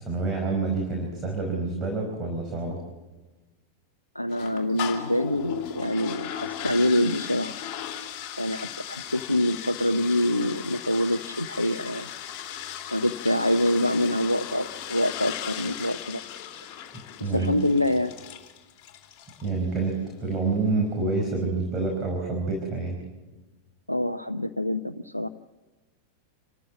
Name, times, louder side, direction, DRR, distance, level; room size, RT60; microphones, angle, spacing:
voice 1, 0.0-2.8 17.2-17.5 19.4-23.0, right 3 dB, 25° right, 1 dB, 5.3 m, -27 dB
voice 2, 4.1-7.5 8.4-12.1 12.9-16.2 17.3-18.1 23.9-25.3, left 1 dB, 85° left, 9 dB, 0.6 m, -25 dB
sound 1, 4.3-19.6, left 10 dB, 40° left, 3.0 m, -37 dB
28.0 x 14.0 x 7.3 m, 1.2 s
figure-of-eight pair, 90°, 0 cm